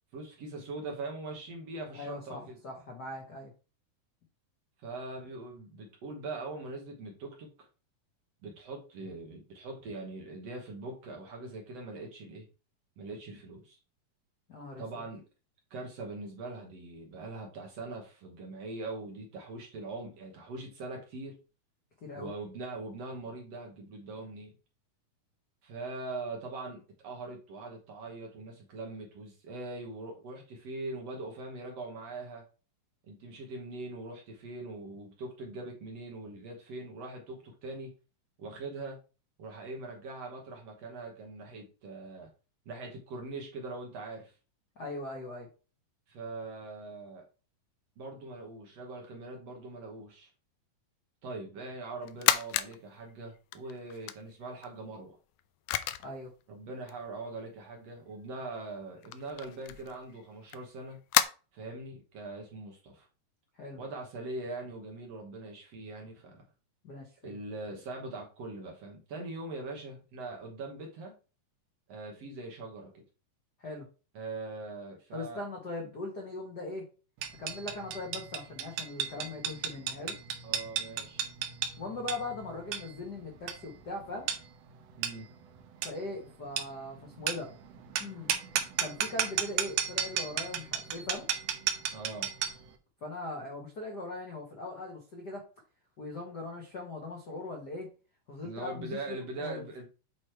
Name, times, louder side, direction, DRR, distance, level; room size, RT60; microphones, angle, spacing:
voice 1, 0.1-2.6 4.8-7.7 8.4-12.5 13.0-13.8 14.8-15.2 15.7-21.4 22.1-24.5 25.6-32.4 33.1-37.9 38.4-39.0 39.4-42.3 42.7-44.3 46.1-47.3 48.0-50.3 51.2-55.2 56.5-61.0 61.5-63.1 63.8-66.5 67.2-71.2 71.9-73.0 74.2-75.4 80.4-81.3 85.0-85.3 91.9-92.3 98.4-99.9, right 2 dB, 60° right, 1 dB, 1.9 m, -42 dB
voice 2, 1.9-3.5 14.5-14.8 22.0-22.3 44.8-45.5 56.0-56.3 63.5-63.8 66.8-67.4 73.6-73.9 75.1-76.8 77.4-80.2 81.8-84.3 85.8-87.5 88.0-88.4 88.8-91.3 93.0-95.4 96.0-97.9 98.3-99.6, left 2 dB, 65° left, 1 dB, 1.0 m, -40 dB
sound 1, 52.0-52.8 53.1-54.7 55.4-55.5 55.7-56.2 56.9-57.0 58.3-58.4 58.6-58.7 59.0-61.2, left 13 dB, 85° left, 1.8 m, -30 dB
sound 2, 77.2-92.7, right 9 dB, 80° right, 1.4 m, -34 dB
8.3 x 3.0 x 4.5 m, 0.34 s
omnidirectional pair, 4.0 m